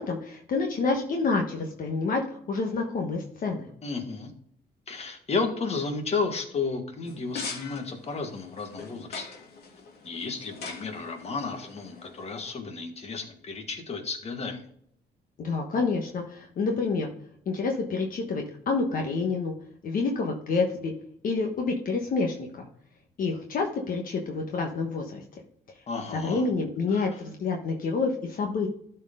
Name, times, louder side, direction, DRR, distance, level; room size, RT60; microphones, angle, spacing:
voice 1, 0.0-3.7 15.4-17.1 17.5-19.5 19.8-20.9 21.2-22.6 23.2-25.4 26.1-28.7, left 4 dB, 55° left, 2 dB, 1.3 m, -28 dB
voice 2, 3.8-4.3 4.9-9.3 10.0-14.7 25.9-26.4 26.9-27.2, left 4 dB, 40° left, 5 dB, 1.7 m, -33 dB
sound 1, 7.0-12.5, left 4 dB, 70° left, 2.4 m, -42 dB
12.5 x 4.6 x 3.7 m, 0.66 s
cardioid pair, 125°, 17 cm